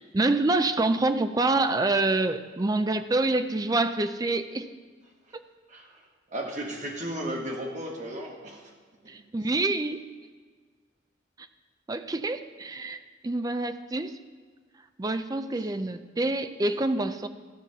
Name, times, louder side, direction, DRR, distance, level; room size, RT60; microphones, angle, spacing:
voice 1, 0.1-4.7 5.3-5.4 9.1-10.0 11.9-14.2 15.0-17.3, right 2 dB, 20° right, 10 dB, 0.4 m, -26 dB
voice 2, 5.7-6.0 6.3-8.7 9.0-9.1, right 1 dB, 40° right, 0 dB, 1.6 m, -35 dB
14.0 x 5.7 x 5.7 m, 1.5 s
head